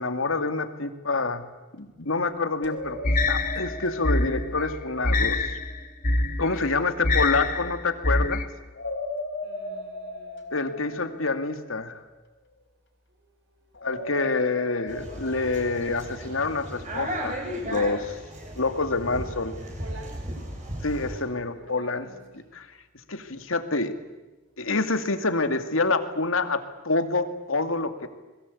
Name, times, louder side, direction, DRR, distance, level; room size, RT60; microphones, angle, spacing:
voice 1, 0.0-1.4 1.8-5.6 6.4-8.4 10.5-12.0 13.8-18.2 18.6-19.6 20.8-22.1 22.5-22.7 23.1-24.0 24.6-28.1, left 3 dB, 85° left, 8 dB, 2.3 m, -27 dB
sound 1, 2.6-5.6 8.7-12.0 13.7-16.5, left 2 dB, 60° left, 4.6 m, -38 dB
sound 2, 3.0-8.4, left 2 dB, 40° left, 1.8 m, -25 dB
voice 2, 6.5-6.9 9.4-11.2 13.1-14.6 19.5-20.5 21.1-22.3, right 2 dB, 65° right, 5 dB, 6.1 m, -50 dB
sound 3, 14.9-21.2, equal, 35° right, 6.9 m, -35 dB
28.5 x 21.5 x 8.5 m, 1.2 s
head